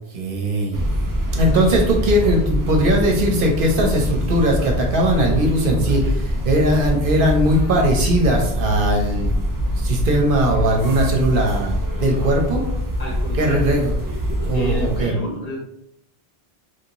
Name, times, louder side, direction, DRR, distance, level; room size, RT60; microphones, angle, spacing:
voice 1, 0.1-0.9 1.3-9.4 9.8-11.7 12.0-12.6 13.4-13.9 14.5-15.1, right 1 dB, 60° right, 1 dB, 0.9 m, -19 dB
sound 1, 0.7-15.0, equal, 30° right, 0.4 m, -24 dB
voice 2, 1.3-1.7 13.0-13.8 14.5-15.6, left 1 dB, 40° left, -5 dB, 1.1 m, -31 dB
3.0 x 2.7 x 2.9 m, 0.75 s
omnidirectional pair, 1.0 m